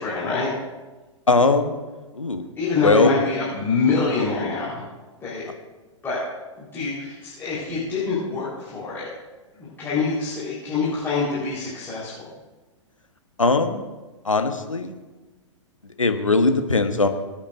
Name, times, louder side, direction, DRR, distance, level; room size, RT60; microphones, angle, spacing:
voice 1, 0.0-0.5 2.6-4.8 5.2-5.5 6.0-6.2 6.6-9.1 9.6-12.3, left 4 dB, 15° left, -9 dB, 4.2 m, -25 dB
voice 2, 1.3-1.8 2.1-2.4 2.8-3.2 13.4-13.9 14.2-15.0 15.8-17.1, left 3 dB, 85° left, 7 dB, 1.0 m, -20 dB
24.0 x 8.7 x 2.6 m, 1.2 s
figure-of-eight pair, 105°, 16 cm